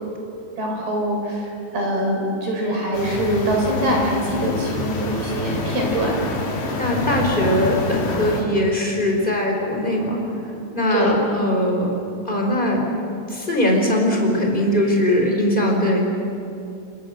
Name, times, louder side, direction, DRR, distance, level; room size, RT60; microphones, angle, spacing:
voice 1, 0.6-6.2 10.9-11.2, equal, 50° right, 0 dB, 6.4 m, -23 dB
sound 1, 2.9-8.4, left 2 dB, 55° left, 5.7 m, -27 dB
voice 2, 6.8-10.2 10.7-11.9 12.2-12.8 13.3-16.0, left 1 dB, 10° left, 1 dB, 4.4 m, -20 dB
29.0 x 26.5 x 7.7 m, 2.7 s
omnidirectional pair, 6.0 m